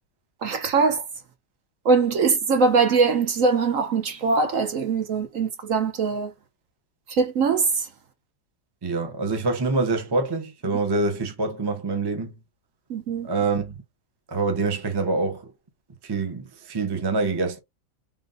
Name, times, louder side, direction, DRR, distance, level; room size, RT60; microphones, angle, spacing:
voice 1, 0.4-1.0 1.8-6.3 7.1-7.9 12.9-13.3, right 4 dB, 60° right, 1.1 m, -22 dB
voice 2, 8.8-12.3 13.2-13.7 14.3-15.4 16.0-17.6, right 3 dB, 20° right, 0.6 m, -25 dB
3.7 x 3.6 x 2.5 m
omnidirectional pair, 1.7 m